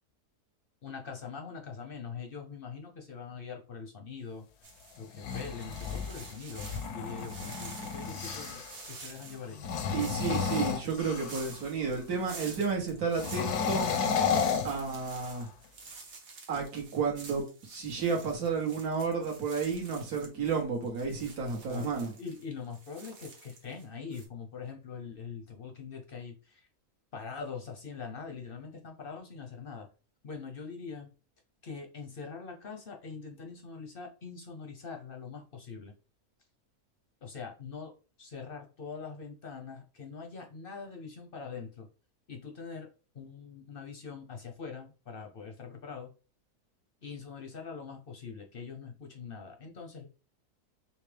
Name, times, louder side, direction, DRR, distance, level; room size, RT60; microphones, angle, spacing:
voice 1, 0.8-4.5 5.0-9.7 21.7-21.9 22.2-26.7 27.1-29.9 30.2-31.1 31.6-35.9 37.2-37.9 38.2-41.9 42.3-42.9 43.1-46.1 47.0-50.1, left 5 dB, 55° left, 0.6 m, -43 dB
sound 1, 4.6-23.8 24.1-24.3, right 4 dB, 50° right, 1.2 m, -49 dB
sound 2, 5.0-8.8 9.5-11.5 13.1-15.4, left 6 dB, 90° left, 1.2 m, -32 dB
voice 2, 9.9-13.9 14.6-15.5 16.5-22.1, right 5 dB, 75° right, 1.6 m, -32 dB
5.6 x 2.1 x 3.3 m
omnidirectional pair, 1.6 m